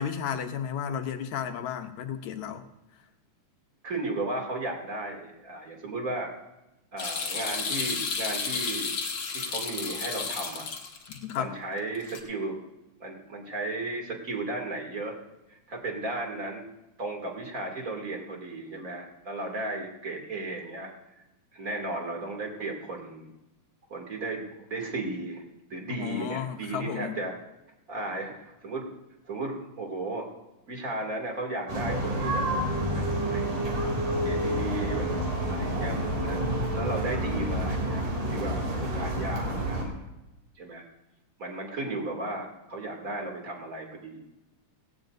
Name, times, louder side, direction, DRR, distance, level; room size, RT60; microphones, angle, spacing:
voice 1, 0.0-2.7 2.9-3.1 11.1-11.5 25.9-27.2, left 8 dB, 70° left, 6 dB, 2.1 m, -33 dB
voice 2, 3.8-6.3 6.9-9.0 9.3-10.6 11.3-12.6 13.0-15.1 15.5-16.7 17.0-20.9 21.2-21.3 21.5-23.3 23.9-25.4 25.7-27.3 27.9-28.9 29.3-30.3 30.7-32.4 32.9-33.5 34.2-36.0 36.2-36.4 36.7-40.1 40.6-40.8 41.4-44.2, right 2 dB, 30° right, 1 dB, 2.6 m, -35 dB
sound 1, 7.0-11.4 11.9-12.2, left 5 dB, 50° left, 2.0 m, -32 dB
sound 2, 31.7-39.8, right 1 dB, 80° right, 4.6 m, -29 dB
18.0 x 17.5 x 2.6 m, 0.96 s
omnidirectional pair, 3.6 m